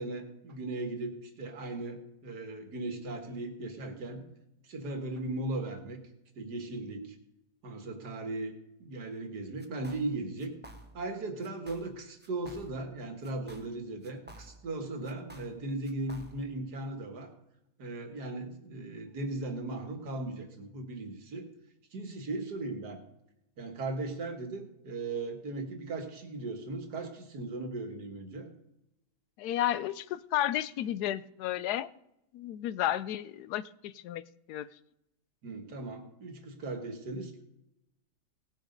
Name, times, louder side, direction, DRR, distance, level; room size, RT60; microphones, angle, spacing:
voice 1, 0.0-4.2 4.6-6.0 6.4-7.2 7.6-8.5 8.8-10.5 10.9-17.3 17.8-21.4 21.9-23.0 23.6-28.5 35.4-37.3, right 2 dB, 90° right, 5 dB, 2.2 m, -37 dB
sound 1, 9.6-10.1 10.4-11.1 11.4-11.9 12.2-12.9 13.2-14.8 15.0-16.6, right 1 dB, 10° right, 0.9 m, -52 dB
voice 2, 29.4-31.9 32.3-34.7, left 12 dB, 80° left, 17 dB, 1.1 m, -32 dB
18.0 x 6.5 x 5.2 m, 0.84 s
omnidirectional pair, 1.7 m